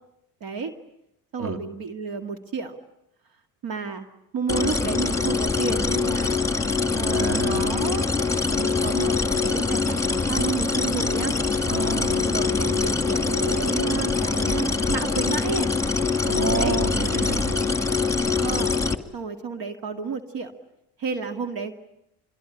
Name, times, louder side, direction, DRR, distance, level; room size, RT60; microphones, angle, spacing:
voice 1, 0.4-0.7 1.3-2.8 3.6-4.1 4.3-6.4 7.0-8.1 8.5-11.4 12.0-15.7 16.5-16.8 18.4-18.8 19.1-20.5 21.0-21.8, right 5 dB, 60° right, 7 dB, 2.3 m, -31 dB
sound 1, 4.5-18.9, left 4 dB, 10° left, 2.0 m, -24 dB
voice 2, 7.1-7.8 11.6-12.3 16.2-17.7, right 4 dB, 35° right, 7 dB, 2.9 m, -29 dB
27.0 x 22.0 x 10.0 m, 0.82 s
supercardioid pair, 85°, 40 cm